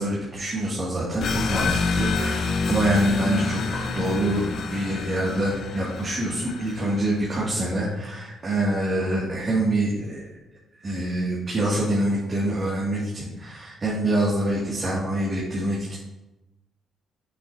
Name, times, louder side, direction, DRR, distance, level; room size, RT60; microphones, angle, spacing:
voice 1, 0.0-10.3 10.8-15.9, right 1 dB, 35° right, -7 dB, 2.6 m, -25 dB
sound 1, 1.2-7.5, left 4 dB, 65° left, 0.8 m, -28 dB
9.4 x 8.4 x 3.0 m, 0.96 s
cardioid pair, 90°, 0 cm